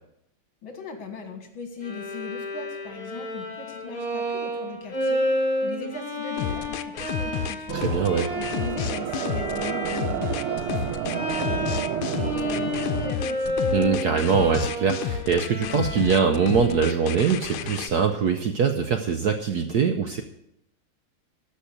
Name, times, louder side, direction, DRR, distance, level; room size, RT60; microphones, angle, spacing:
voice 1, 0.6-7.9 8.3-13.6, left 4 dB, 65° left, 5 dB, 2.4 m, -39 dB
Bowed string instrument, 1.8-17.9, equal, 45° left, 5.5 m, -31 dB
sound 1, 6.4-17.9, left 10 dB, 90° left, 1.5 m, -31 dB
voice 2, 7.7-8.3 13.7-20.2, right 6 dB, 65° right, 6 dB, 1.0 m, -23 dB
sound 2, 7.7-13.1, right 11 dB, 85° right, 1.5 m, -31 dB
13.0 x 5.5 x 8.0 m, 0.80 s
omnidirectional pair, 2.4 m